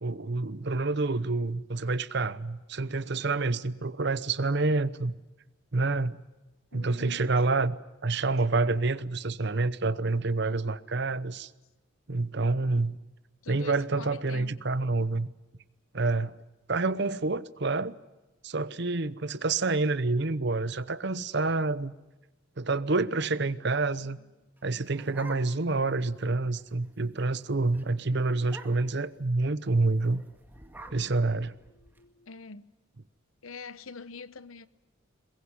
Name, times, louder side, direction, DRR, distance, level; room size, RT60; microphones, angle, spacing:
voice 1, 0.0-5.1 5.7-6.2 6.7-7.8 8.0-11.5 12.1-13.0 13.5-15.3 15.9-16.3 16.7-17.9 18.4-21.9 22.6-24.2 24.6-30.2 30.9-31.6, right 3 dB, 55° right, 0.9 m, -28 dB
voice 2, 6.7-7.3 7.5-7.8 8.8-8.9 12.6-12.8 13.4-14.6 16.2-16.4 20.1-20.2 23.2-24.3 27.5-27.6 30.0-30.2 31.7-32.7 33.4-34.7, left 4 dB, 85° left, 1.0 m, -46 dB
sound 1, 24.6-25.8 26.2-26.3 26.6-26.9 27.2-27.4 27.7-27.9 28.4-29.0 29.9-32.0, right 1 dB, 10° right, 2.0 m, -48 dB
22.0 x 21.5 x 9.7 m
head